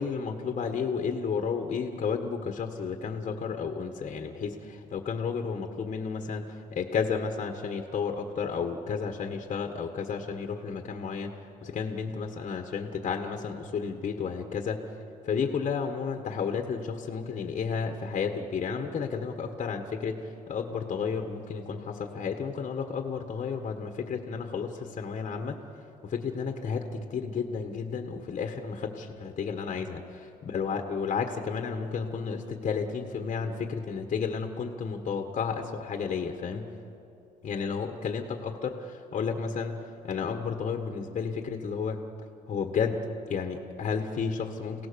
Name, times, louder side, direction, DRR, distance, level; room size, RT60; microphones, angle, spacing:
voice 1, 0.0-11.3 11.6-14.8 15.2-20.2 20.5-25.6 26.0-36.7 37.4-42.0 42.5-43.0 43.3-44.9, left 6 dB, 40° left, 5 dB, 1.6 m, -32 dB
29.5 x 17.5 x 7.0 m, 2.7 s
cardioid pair, 110°, 17 cm